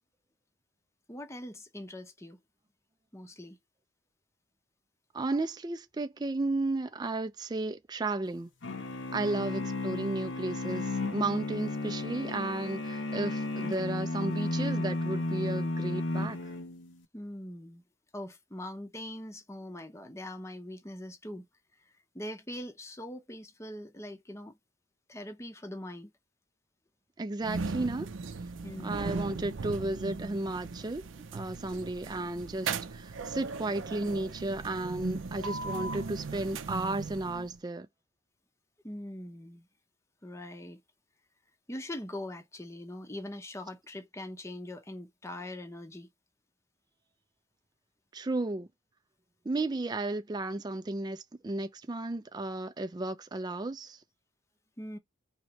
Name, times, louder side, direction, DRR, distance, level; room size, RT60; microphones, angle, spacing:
voice 1, 1.1-2.4 3.1-3.6 9.3-9.7 17.1-17.8 18.1-21.5 21.8-24.6 25.1-26.1 28.6-29.1 38.8-39.7 40.2-40.8 41.7-46.1 54.8-55.0, left 1 dB, 15° left, 0.7 m, -42 dB
voice 2, 5.1-8.5 9.1-16.4 27.2-28.1 28.8-31.0 31.3-37.9 48.1-48.7 49.5-54.0, right 2 dB, 20° right, 0.4 m, -33 dB
sound 1, 8.6-16.9, left 2 dB, 70° left, 0.8 m, -34 dB
sound 2, 27.4-37.6, right 4 dB, 75° right, 0.6 m, -38 dB
3.1 x 2.9 x 4.4 m
head